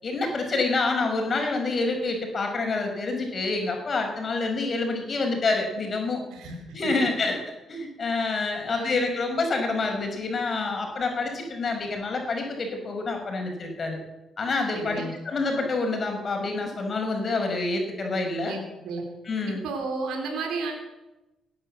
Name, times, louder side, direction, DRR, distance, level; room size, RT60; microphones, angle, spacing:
voice 1, 0.0-6.2 6.7-7.4 7.7-14.0 14.4-18.6 19.3-19.6, left 3 dB, 45° left, 3 dB, 5.5 m, -27 dB
voice 2, 6.3-7.0 8.7-9.0 14.7-15.1 18.4-19.0 19.5-20.7, right 4 dB, 85° right, 3 dB, 3.5 m, -33 dB
17.5 x 10.5 x 7.7 m, 0.99 s
cardioid pair, 90°, 0 cm